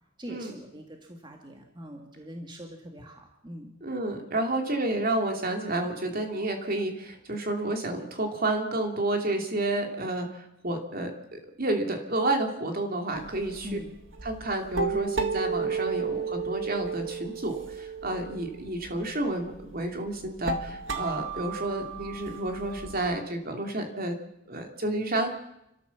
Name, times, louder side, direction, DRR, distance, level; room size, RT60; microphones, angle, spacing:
voice 1, 0.2-3.7 13.6-13.9, equal, 20° right, 2 dB, 2.1 m, -42 dB
voice 2, 3.8-13.8 14.2-24.2 24.5-25.3, right 2 dB, 45° right, 3 dB, 2.8 m, -30 dB
sound 1, 13.1-23.2, right 5 dB, 65° right, 1.9 m, -34 dB
29.5 x 13.5 x 7.2 m, 0.85 s
head